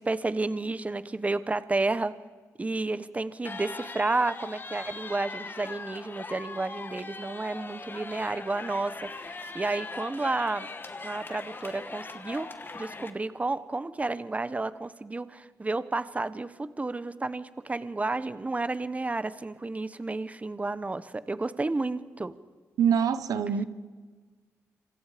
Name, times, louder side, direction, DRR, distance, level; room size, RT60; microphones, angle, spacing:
voice 1, 0.0-2.1 2.6-10.7 11.0-12.5 12.7-22.3, right 3 dB, 25° right, 14 dB, 1.0 m, -31 dB
sound 1, 3.4-13.1, left 3 dB, 35° left, 2.0 m, -40 dB
voice 2, 22.8-23.6, right 7 dB, 90° right, 11 dB, 1.2 m, -24 dB
27.0 x 26.0 x 5.1 m, 1.4 s
cardioid pair, 75°, 6 cm